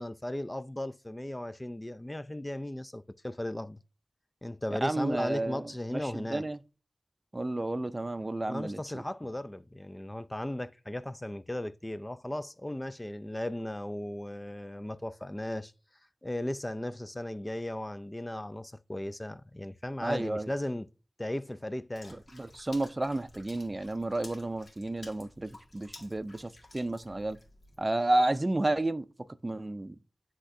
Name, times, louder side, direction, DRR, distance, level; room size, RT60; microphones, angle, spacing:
voice 1, 0.0-3.8 4.4-6.4 8.5-15.7 16.2-20.9 21.2-22.2, left 1 dB, 20° left, 0.4 m, -36 dB
voice 2, 4.7-6.6 7.3-9.0 20.0-20.5 22.1-27.4 27.8-29.1 29.4-30.0, right 2 dB, 35° right, 0.5 m, -31 dB
Water / Splash splatter, 22.0-27.8, left 2 dB, 70° left, 1.9 m, -53 dB
9.9 x 3.6 x 2.6 m
wide cardioid pair, 50°, 0 cm